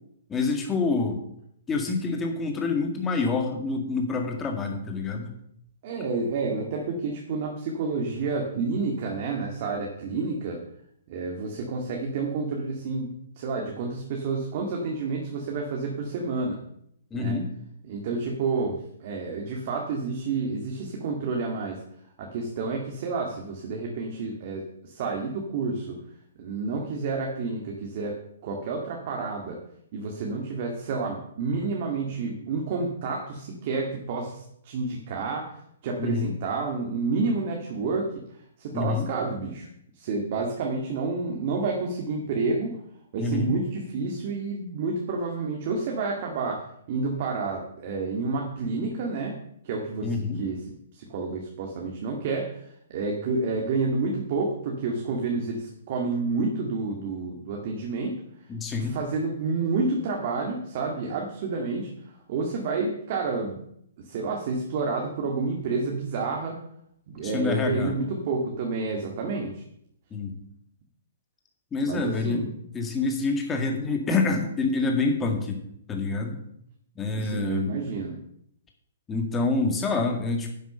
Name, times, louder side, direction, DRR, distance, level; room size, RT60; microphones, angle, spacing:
voice 1, 0.3-1.2 1.7-5.3 17.1-17.5 36.0-36.3 38.7-39.1 43.2-43.5 50.0-50.4 58.5-59.0 67.2-67.9 70.1-70.4 71.7-72.5 72.7-75.6 75.9-76.4 77.0-77.7 79.1-80.5, left 3 dB, 10° left, 3 dB, 1.9 m, -27 dB
voice 2, 5.8-10.6 11.1-16.6 17.1-17.4 17.9-21.8 22.2-26.0 26.4-28.1 28.4-29.6 29.9-35.5 35.8-38.1 38.6-39.7 40.0-42.8 43.1-49.3 49.6-50.1 50.4-50.6 50.9-58.2 58.8-61.9 62.3-63.6 64.0-66.6 67.1-69.6 71.8-72.5 77.2-78.2, right 4 dB, 40° right, 0 dB, 2.1 m, -29 dB
10.5 x 7.9 x 6.8 m, 0.71 s
hypercardioid pair, 165°, 0 cm